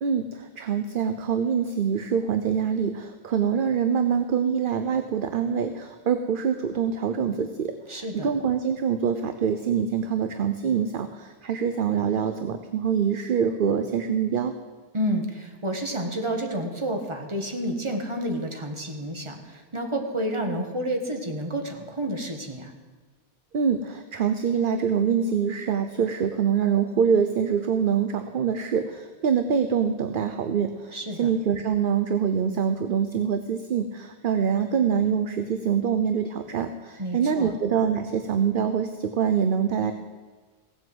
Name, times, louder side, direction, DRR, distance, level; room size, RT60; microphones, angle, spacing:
voice 1, 0.0-14.5 23.5-39.9, right 7 dB, 55° right, 8 dB, 0.8 m, -25 dB
voice 2, 7.9-8.3 14.9-22.7 30.9-31.3 37.0-37.6, right 1 dB, 25° right, 3 dB, 1.7 m, -30 dB
16.5 x 7.6 x 7.9 m, 1.3 s
omnidirectional pair, 1.1 m